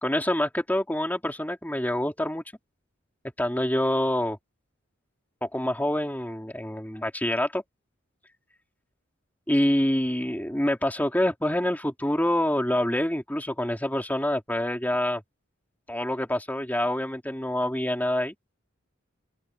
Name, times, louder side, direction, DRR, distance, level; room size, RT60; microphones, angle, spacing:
voice 1, 0.0-2.4 3.4-4.4 5.4-7.6 9.5-15.2 15.9-18.3, left 1 dB, 10° left, 2.9 m, -26 dB
open air
head